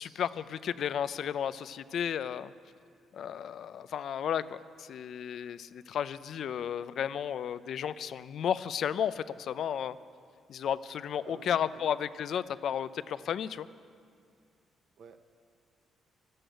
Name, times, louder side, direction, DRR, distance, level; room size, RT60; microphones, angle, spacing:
voice 1, 0.0-2.5 3.1-10.0 10.5-13.7, left 9 dB, 65° left, 15 dB, 0.5 m, -33 dB
voice 2, 11.2-12.0 15.0-15.2, right 6 dB, 65° right, 8 dB, 0.8 m, -51 dB
14.0 x 11.5 x 8.0 m, 2.2 s
cardioid pair, 90°, 0 cm